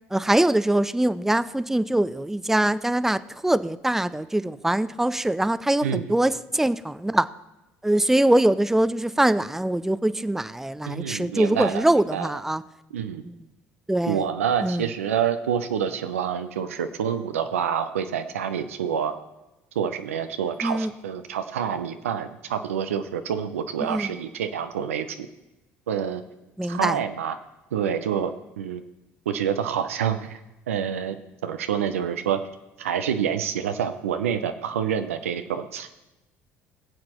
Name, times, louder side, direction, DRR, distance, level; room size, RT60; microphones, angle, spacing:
voice 1, 0.1-7.3 7.8-12.6 13.9-14.2 14.6-14.8 20.6-20.9 23.8-24.1 26.6-27.0, right 1 dB, 5° right, 15 dB, 0.4 m, -23 dB
voice 2, 5.8-6.1 10.9-11.8 12.1-12.3 12.9-13.2 14.1-19.1 19.8-25.3 25.9-26.2 26.7-27.4 27.7-28.3 28.6-28.8 29.3-30.4 30.7-31.2 31.4-32.4 32.8-35.9, right 8 dB, 90° right, 9 dB, 0.6 m, -27 dB
19.5 x 7.6 x 3.0 m, 0.99 s
hypercardioid pair, 65°, 7 cm